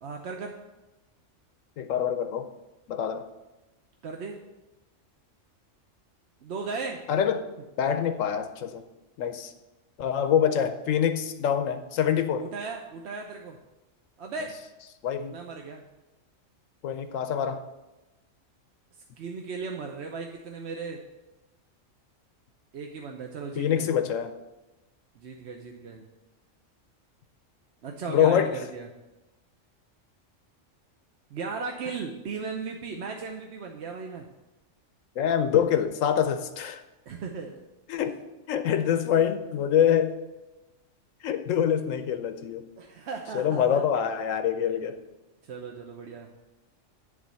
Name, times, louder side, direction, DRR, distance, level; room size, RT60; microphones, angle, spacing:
voice 1, 0.0-0.6 4.0-4.4 6.4-7.1 12.4-13.6 14.2-14.6 15.3-15.8 19.2-21.0 22.7-23.9 25.2-26.1 27.8-28.9 31.3-34.3 37.1-37.7 42.8-43.8 45.4-46.3, right 4 dB, 60° right, 3 dB, 1.0 m, -36 dB
voice 2, 1.8-2.5 2.9-3.3 7.1-7.4 7.8-8.8 9.2-9.5 10.0-12.5 15.0-15.3 16.8-17.7 23.6-24.3 28.1-28.6 35.2-36.8 37.9-38.2 38.5-40.2 41.2-42.7 43.3-45.0, left 8 dB, 80° left, 9 dB, 1.0 m, -25 dB
11.0 x 3.7 x 7.4 m, 1.0 s
omnidirectional pair, 1.3 m